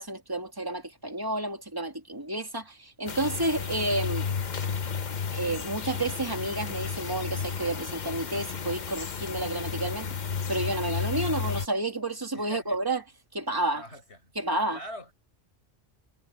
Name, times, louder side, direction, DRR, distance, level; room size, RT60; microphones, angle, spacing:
voice 1, 0.0-4.3 5.3-10.1 10.5-13.0 13.3-13.8 14.3-14.8, right 2 dB, 20° right, 2.7 m, -30 dB
sound 1, 3.1-11.7, left 6 dB, 45° left, 0.9 m, -33 dB
voice 2, 12.3-12.8 13.7-14.3 14.7-15.1, left 1 dB, 75° left, 7.5 m, -43 dB
omnidirectional pair, 1.1 m